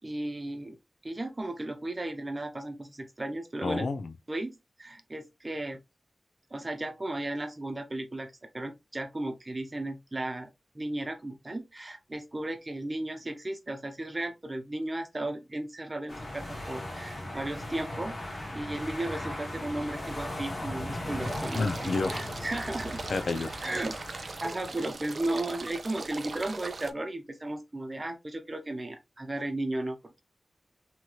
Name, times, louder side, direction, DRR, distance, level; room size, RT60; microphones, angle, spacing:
voice 1, 0.0-0.8 1.0-3.9 4.3-5.8 6.5-10.5 10.7-18.2 18.5-23.1 23.6-24.0 24.4-30.2, right 1 dB, 30° right, 0.7 m, -35 dB
voice 2, 3.6-4.1 21.5-22.4 23.1-23.5, left 3 dB, 90° left, 0.4 m, -30 dB
sound 1, 16.1-24.9, left 1 dB, 45° left, 1.2 m, -38 dB
sound 2, 21.2-26.9, right 3 dB, 70° right, 0.3 m, -40 dB
3.0 x 2.9 x 2.3 m
wide cardioid pair, 80°, 0 cm